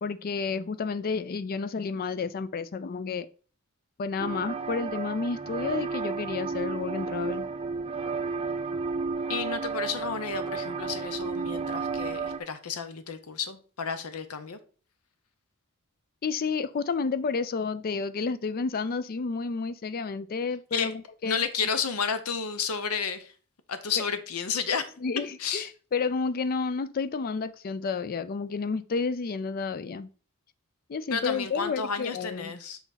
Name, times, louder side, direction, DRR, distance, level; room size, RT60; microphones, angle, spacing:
voice 1, 0.0-3.3 4.0-7.5 16.2-21.4 24.0-24.1 25.0-30.1 30.9-32.6, left 4 dB, 45° left, 0.4 m, -31 dB
sound 1, 4.2-12.4, right 4 dB, 25° right, 0.5 m, -32 dB
voice 2, 9.3-14.6 20.7-20.9 21.2-23.3 23.7-24.9 25.2-25.7 31.1-32.8, left 6 dB, 80° left, 0.8 m, -31 dB
5.9 x 4.0 x 4.0 m
head